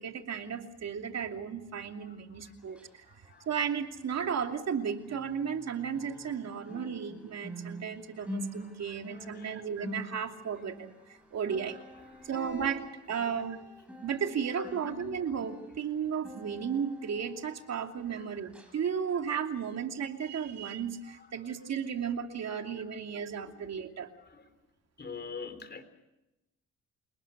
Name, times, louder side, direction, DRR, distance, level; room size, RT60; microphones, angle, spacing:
voice 1, 0.0-3.0 3.5-11.8 12.2-13.6 14.0-24.1, right 7 dB, 60° right, 5 dB, 2.8 m, -34 dB
voice 2, 2.0-2.5 3.1-3.5 8.2-8.3 9.2-9.9 12.1-12.3 13.2-13.3 23.4-23.5 24.3-24.4 25.0-25.8, left 5 dB, 35° left, 10 dB, 3.7 m, -45 dB
sound 1, 2.6-4.8 5.0-18.2 18.5-18.8 19.2-19.3, equal, 5° right, 7.9 m, -46 dB
28.5 x 19.5 x 6.7 m, 0.92 s
cardioid pair, 90°, 30 cm